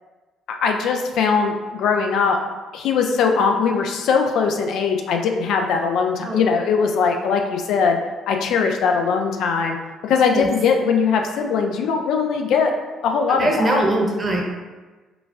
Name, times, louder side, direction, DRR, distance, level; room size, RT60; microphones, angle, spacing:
voice 1, 0.6-2.4 2.7-8.0 8.3-9.8 10.0-12.7 13.0-13.8, left 5 dB, 65° left, 3 dB, 0.3 m, -20 dB
voice 2, 13.3-14.4, right 1 dB, 35° right, 0 dB, 0.9 m, -21 dB
4.9 x 2.3 x 2.4 m, 1.3 s
hypercardioid pair, 50°, 0 cm